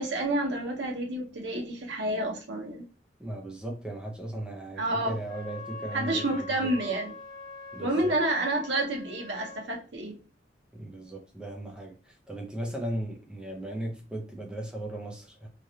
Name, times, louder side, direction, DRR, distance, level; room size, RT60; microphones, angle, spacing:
voice 1, 0.0-2.8 4.8-5.1 5.9-7.1 7.8-10.2, right 1 dB, 75° right, 0.9 m, -29 dB
voice 2, 3.2-6.7 7.7-8.1 10.7-15.5, right 1 dB, 5° right, 0.6 m, -37 dB
Wind instrument woodwind instrument, 5.2-9.7, left 2 dB, 45° left, 0.9 m, -43 dB
3.2 x 2.5 x 2.7 m
head